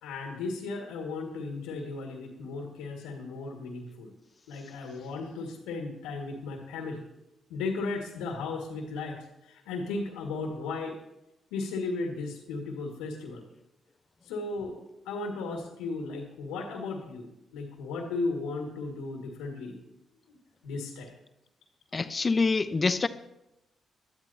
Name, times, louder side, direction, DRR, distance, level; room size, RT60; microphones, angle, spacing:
voice 1, 0.0-4.1 4.5-7.1 7.5-10.9 11.5-13.4 14.3-14.8 15.1-17.3 17.5-19.8 20.3-20.4 20.6-21.1, left 3 dB, 85° left, 2.0 m, -35 dB
voice 2, 21.9-23.1, left 4 dB, 40° left, 0.8 m, -25 dB
21.5 x 12.5 x 2.8 m
hypercardioid pair, 45°, 0 cm